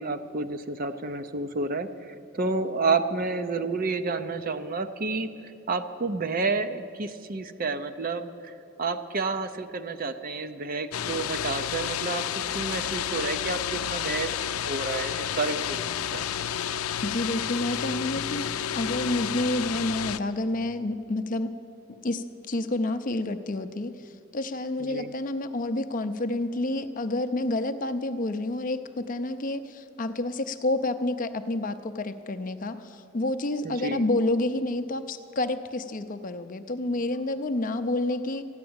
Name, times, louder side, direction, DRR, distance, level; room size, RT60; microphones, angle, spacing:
voice 1, 0.0-5.3 5.7-16.3 24.8-25.1 33.6-34.1, right 3 dB, 40° right, 9 dB, 0.6 m, -30 dB
sound 1, 10.9-20.2, left 9 dB, 85° left, 0.5 m, -31 dB
voice 2, 17.0-18.5 18.7-21.5 22.0-38.4, left 2 dB, 40° left, 9 dB, 0.5 m, -29 dB
14.0 x 10.5 x 8.7 m, 2.5 s
head